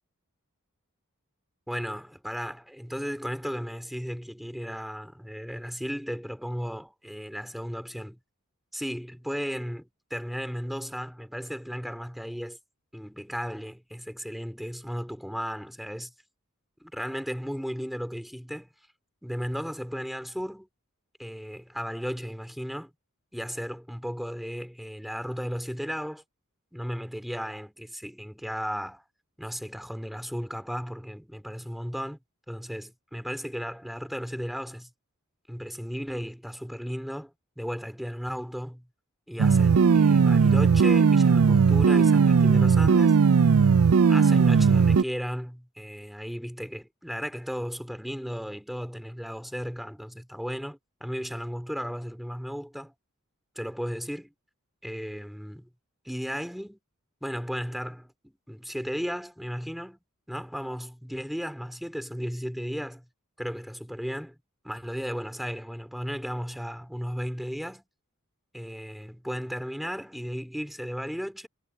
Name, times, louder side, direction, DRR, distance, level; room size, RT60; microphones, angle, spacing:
voice 1, 1.7-8.2 8.7-12.6 12.9-16.1 16.8-18.7 19.2-20.7 21.2-22.9 23.3-26.2 26.7-29.0 29.4-32.2 32.5-34.9 35.5-38.9 39.3-43.2 44.1-52.9 53.6-54.3 54.8-55.7 56.0-56.8 57.2-60.0 60.3-63.0 63.4-64.4 64.6-67.8 68.5-71.5, equal, ahead, 2.6 m, -35 dB
sound 1, 39.4-45.0, right 5 dB, 80° right, 0.5 m, -18 dB
head